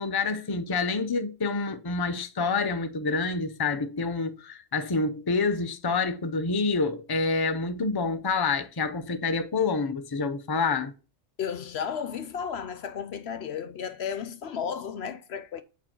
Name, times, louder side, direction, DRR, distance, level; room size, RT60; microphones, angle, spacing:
voice 1, 0.0-10.9, left 4 dB, 25° left, 0.6 m, -27 dB
voice 2, 11.4-15.6, left 7 dB, 65° left, 0.9 m, -33 dB
8.6 x 4.5 x 4.5 m
omnidirectional pair, 1.2 m